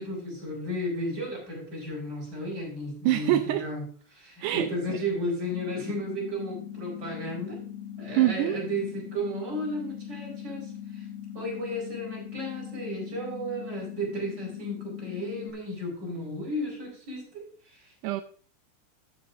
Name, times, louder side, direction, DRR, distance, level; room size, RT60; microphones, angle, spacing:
voice 1, 0.0-3.8 4.1-7.6 8.0-11.1 11.3-17.9, equal, 30° right, -2 dB, 4.7 m, -34 dB
voice 2, 3.1-3.7 4.4-5.0 8.2-8.6 18.0-18.2, right 14 dB, 85° right, 8 dB, 2.1 m, -25 dB
sound 1, 5.5-15.5, left 10 dB, 85° left, 2.2 m, -40 dB
14.0 x 7.6 x 2.5 m, 0.43 s
omnidirectional pair, 3.7 m